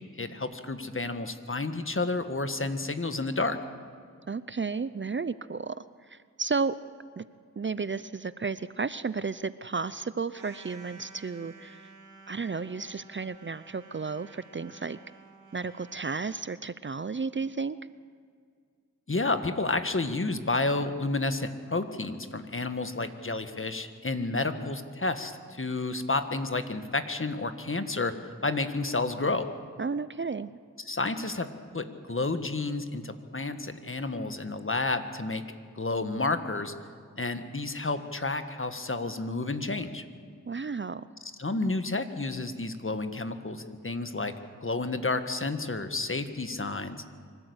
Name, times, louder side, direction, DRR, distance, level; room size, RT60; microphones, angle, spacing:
voice 1, 0.2-3.6 19.1-28.1 28.4-29.4 30.9-31.5 31.7-35.4 35.7-36.7 37.2-40.0 41.4-44.3 44.6-47.0, left 3 dB, 40° left, 9 dB, 1.6 m, -30 dB
voice 2, 4.3-5.8 6.1-6.7 7.2-7.3 7.6-11.8 12.3-15.0 15.5-17.8 29.8-30.6 40.5-41.1, right 4 dB, 35° right, 16 dB, 0.6 m, -33 dB
sound 1, 10.3-16.1, right 4 dB, 70° right, 3.9 m, -52 dB
24.5 x 13.0 x 8.1 m, 2.1 s
cardioid pair, 45°, 32 cm